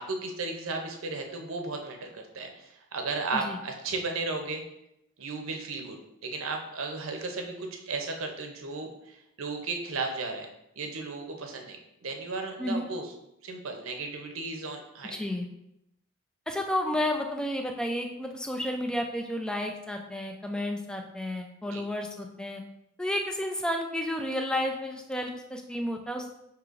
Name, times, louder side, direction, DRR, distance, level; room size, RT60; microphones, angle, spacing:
voice 1, 0.0-4.6 5.2-10.5 10.8-13.1 13.4-15.2 21.7-21.8, right 3 dB, 75° right, 4 dB, 0.6 m, -35 dB
voice 2, 15.1-15.5 16.5-22.6 23.0-26.3, left 1 dB, 5° left, 3 dB, 0.4 m, -31 dB
6.1 x 2.9 x 2.4 m, 0.84 s
head